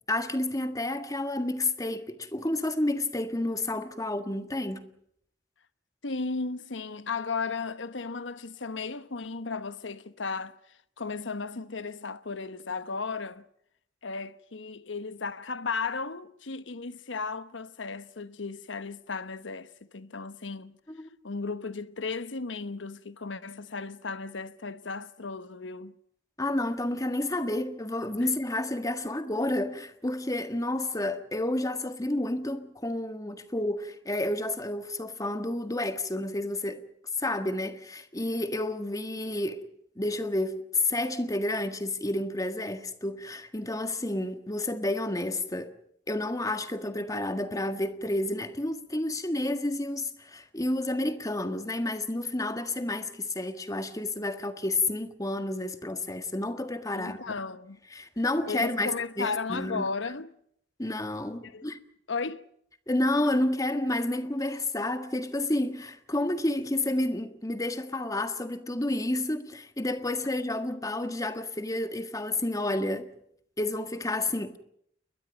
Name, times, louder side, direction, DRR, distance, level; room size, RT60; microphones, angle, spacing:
voice 1, 0.1-4.9 20.9-21.1 26.4-36.8 37.2-39.6 40.0-45.7 46.1-57.2 57.9-59.9 60.8-61.8 62.9-73.1 73.6-74.6, left 1 dB, 20° left, 1.7 m, -30 dB
voice 2, 6.0-10.5 11.0-13.4 14.0-20.8 21.2-25.9 56.9-57.8 58.5-60.3 61.4-61.7 62.1-62.4, left 4 dB, 85° left, 1.1 m, -35 dB
29.5 x 21.5 x 5.3 m
head